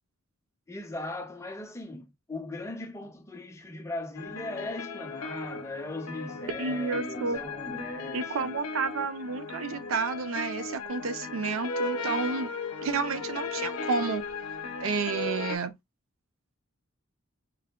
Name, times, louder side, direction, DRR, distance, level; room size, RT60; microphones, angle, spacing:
voice 1, 0.7-8.5, left 2 dB, 15° left, 0.4 m, -38 dB
sound 1, 4.2-15.6, left 3 dB, 75° left, 0.6 m, -36 dB
voice 2, 6.6-7.4 8.1-12.5 12.8-14.2 14.8-15.7, right 4 dB, 65° right, 0.5 m, -31 dB
4.5 x 2.1 x 2.2 m
head